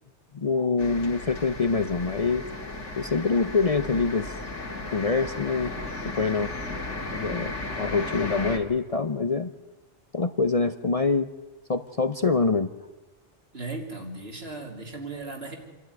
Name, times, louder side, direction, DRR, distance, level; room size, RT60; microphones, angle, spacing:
voice 1, 0.3-2.5 3.0-4.3 4.9-5.7 6.1-6.5 7.1-9.5 10.1-11.3 11.7-12.7, left 4 dB, 35° left, 9 dB, 0.7 m, -25 dB
sound 1, 0.8-8.6, left 2 dB, 80° left, 2.6 m, -35 dB
voice 2, 13.5-15.6, right 3 dB, 60° right, 1 dB, 3.8 m, -36 dB
28.0 x 12.5 x 9.6 m, 1.2 s
omnidirectional pair, 1.2 m